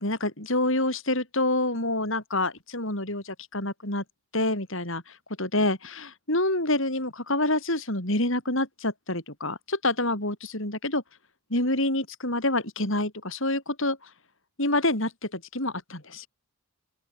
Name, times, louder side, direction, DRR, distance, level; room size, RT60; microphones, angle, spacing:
voice 1, 0.0-4.0 4.3-11.0 11.5-14.1 14.6-16.3, left 1 dB, 60° left, 7.2 m, -27 dB
open air
head